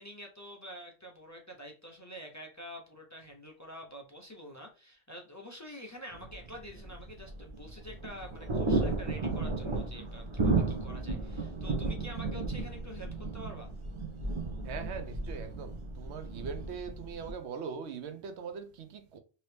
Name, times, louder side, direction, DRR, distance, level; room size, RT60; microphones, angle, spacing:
voice 1, 0.0-13.7, equal, 30° left, 0.3 m, -47 dB
sound 1, 6.1-17.3, right 3 dB, 35° right, 0.5 m, -34 dB
voice 2, 14.6-19.2, right 6 dB, 80° right, 0.9 m, -41 dB
2.9 x 2.7 x 3.2 m
omnidirectional pair, 1.1 m